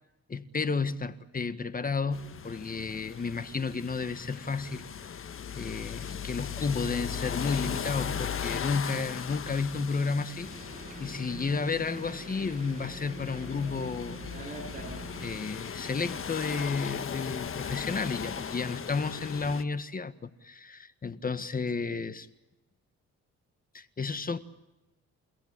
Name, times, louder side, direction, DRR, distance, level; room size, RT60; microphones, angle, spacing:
voice 1, 0.3-4.8 5.5-10.7 11.0-14.2 15.2-22.3 23.7-24.4, left 4 dB, 30° left, 1.7 m, -32 dB
sound 1, 2.1-19.6, left 8 dB, 45° left, 1.5 m, -38 dB
sound 2, 10.4-15.4, right 3 dB, 25° right, 7.5 m, -44 dB
30.0 x 17.0 x 9.9 m
cardioid pair, 90°, 30 cm